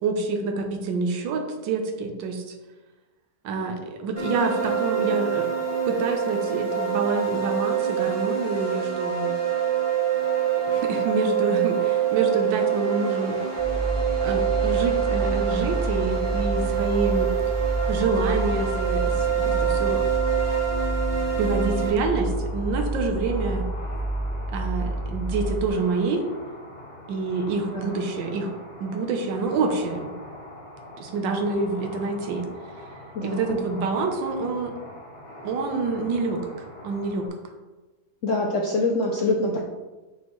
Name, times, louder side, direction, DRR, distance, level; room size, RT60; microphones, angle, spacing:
voice 1, 0.0-2.5 3.4-5.5 5.9-9.3 10.7-13.4 14.2-17.3 17.9-20.1 21.1-23.6 24.5-26.2 27.1-28.5 28.8-30.1 31.0-32.5 33.2-34.7 35.4-36.4 36.8-37.3, right 3 dB, 80° right, 4 dB, 1.5 m, -27 dB
sound 1, 4.2-21.9, right 8 dB, 30° right, 1.8 m, -25 dB
sound 2, 13.6-25.7, right 1 dB, 15° right, 0.4 m, -29 dB
sound 3, 22.0-37.3, left 1 dB, 40° left, 1.2 m, -42 dB
voice 2, 33.1-33.6 38.2-39.6, left 2 dB, 65° left, 0 dB, 0.7 m, -25 dB
6.3 x 6.0 x 3.1 m, 1.2 s
omnidirectional pair, 2.0 m